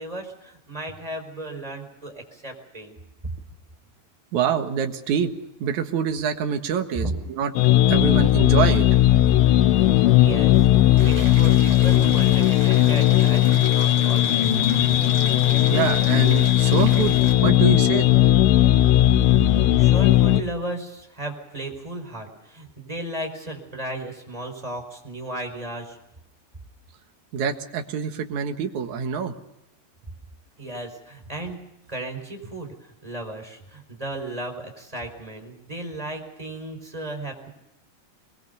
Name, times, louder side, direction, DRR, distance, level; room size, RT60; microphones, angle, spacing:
voice 1, 0.0-3.0 6.9-7.1 10.2-10.7 11.0-14.7 19.2-19.5 19.8-26.0 30.6-37.5, right 1 dB, 10° right, 4 dB, 4.5 m, -35 dB
voice 2, 4.3-5.3 5.6-7.5 7.9-8.9 15.7-18.1 27.3-29.3, right 8 dB, 60° right, 6 dB, 2.2 m, -25 dB
sound 1, 7.6-20.4, left 13 dB, 85° left, 3.4 m, -17 dB
Stream, 11.0-17.3, right 3 dB, 25° right, 4.1 m, -38 dB
23.0 x 22.0 x 6.9 m, 0.88 s
omnidirectional pair, 5.1 m